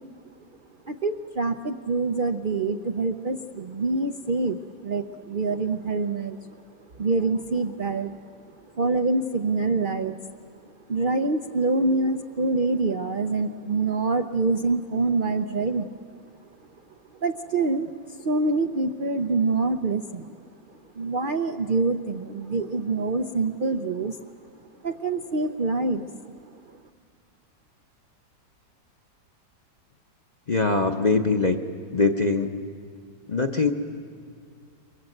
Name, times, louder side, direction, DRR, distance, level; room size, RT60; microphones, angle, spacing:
voice 1, 0.9-6.4 7.0-8.2 8.8-10.2 10.9-15.9 17.2-17.9 18.2-20.3 21.0-24.2 24.8-26.1, right 3 dB, 70° right, 7 dB, 0.4 m, -25 dB
voice 2, 30.5-31.6 31.9-32.5 33.3-33.7, left 3 dB, 35° left, 4 dB, 0.7 m, -22 dB
29.0 x 22.0 x 7.9 m, 2.2 s
omnidirectional pair, 2.0 m